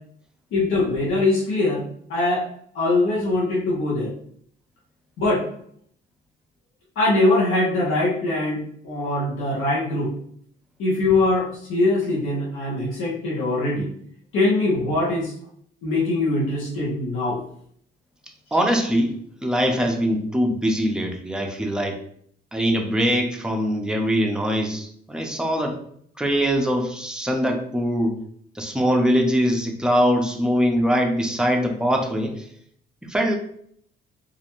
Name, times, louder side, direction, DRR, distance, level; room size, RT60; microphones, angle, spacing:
voice 1, 0.5-1.8 2.1-2.4 2.7-4.1 5.2-5.4 7.0-8.6 8.8-10.1 10.8-13.9 14.3-15.3 15.8-17.4, left 2 dB, 85° left, -7 dB, 0.8 m, -22 dB
voice 2, 18.5-22.0 22.5-25.8 26.2-28.2 28.5-32.5 33.1-33.3, equal, 5° right, 2 dB, 0.5 m, -22 dB
2.4 x 2.1 x 2.9 m, 0.65 s
cardioid pair, 90°, 20 cm